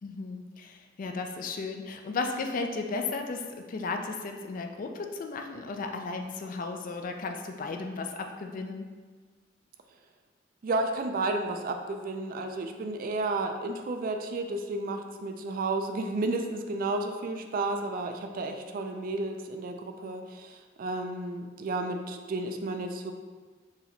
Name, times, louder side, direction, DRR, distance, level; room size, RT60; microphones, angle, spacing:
voice 1, 0.0-8.9, left 3 dB, 45° left, 4 dB, 0.4 m, -35 dB
voice 2, 10.6-23.1, right 2 dB, 50° right, 5 dB, 0.3 m, -32 dB
4.6 x 2.9 x 3.3 m, 1.4 s
head